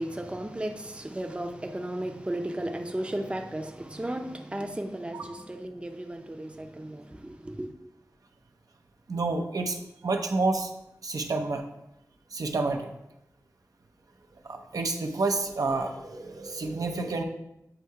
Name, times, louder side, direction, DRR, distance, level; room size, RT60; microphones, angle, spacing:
voice 1, 0.0-7.7, right 1 dB, 20° right, 0.5 m, -35 dB
voice 2, 9.1-9.8 10.0-10.7 11.0-11.6 12.3-12.9 14.4-17.2, right 3 dB, 75° right, 0.6 m, -29 dB
7.7 x 2.7 x 4.6 m
wide cardioid pair, 80°, 6 cm